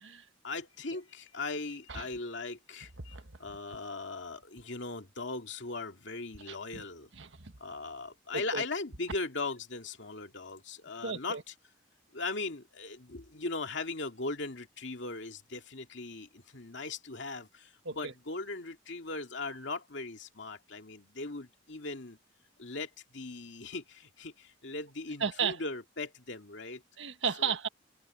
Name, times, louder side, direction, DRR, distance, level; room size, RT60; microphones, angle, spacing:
voice 1, 0.4-7.1 7.6-11.5 12.1-22.2 22.6-26.8 27.4-27.5, left 3 dB, 70° left, 2.3 m, -39 dB
voice 2, 6.5-6.8 7.1-7.5 8.5-8.6 11.0-11.4 17.8-18.1 25.2-25.6 27.0-27.7, right 6 dB, 75° right, 1.5 m, -34 dB
head